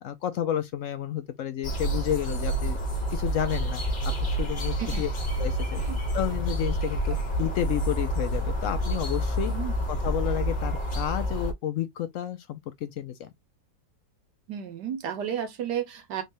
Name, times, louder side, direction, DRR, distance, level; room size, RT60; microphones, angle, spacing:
voice 1, 0.0-2.8 3.1-3.8 4.2-5.1 5.4-5.8 6.1-9.5 9.9-13.3, left 11 dB, 75° left, 0.7 m, -31 dB
sound 1, 1.6-11.5, equal, 35° left, 1.0 m, -28 dB
voice 2, 9.5-9.9 14.5-16.2, right 9 dB, 70° right, 1.4 m, -33 dB
3.8 x 3.3 x 2.6 m
omnidirectional pair, 1.9 m